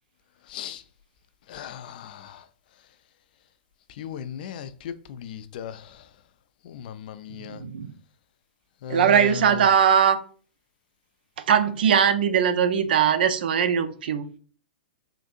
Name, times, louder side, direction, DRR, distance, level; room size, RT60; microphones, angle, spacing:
voice 1, 0.4-0.8 1.5-2.5 3.9-6.1 6.6-7.6 8.8-9.7, left 9 dB, 50° left, 0.3 m, -37 dB
voice 2, 7.4-7.9 8.9-10.2 11.5-14.3, right 8 dB, 60° right, 0.4 m, -20 dB
3.8 x 2.6 x 2.5 m
figure-of-eight pair, 110°, 6 cm